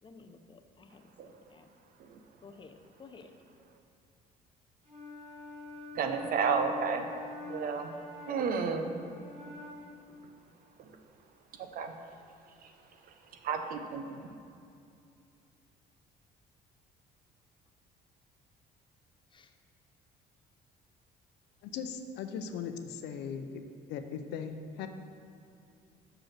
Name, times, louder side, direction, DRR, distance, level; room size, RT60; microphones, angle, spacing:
voice 1, 0.0-1.7 2.4-3.3 19.3-19.5, left 4 dB, 30° left, 7 dB, 0.6 m, -54 dB
Wind instrument woodwind instrument, 4.8-10.0, left 2 dB, 35° right, 2.0 m, -45 dB
voice 2, 5.9-7.1 7.4-7.9 8.3-9.0 10.8-10.9 11.6-11.9 12.6-12.7 13.4-14.2, right 5 dB, 60° right, 6 dB, 0.7 m, -32 dB
voice 3, 21.6-23.6 23.9-24.9, left 6 dB, 85° left, 7 dB, 0.6 m, -39 dB
6.3 x 5.3 x 5.8 m, 2.6 s
cardioid pair, 110°, 17 cm